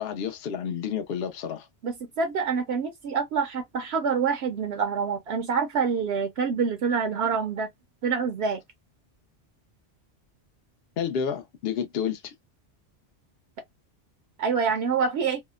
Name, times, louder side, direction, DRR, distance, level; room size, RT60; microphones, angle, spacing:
voice 1, 0.0-1.7 11.0-12.3, left 7 dB, 65° left, 0.8 m, -30 dB
voice 2, 1.8-7.7 8.0-8.6 14.4-15.4, right 5 dB, 70° right, 0.8 m, -26 dB
2.8 x 2.0 x 2.3 m
omnidirectional pair, 1.2 m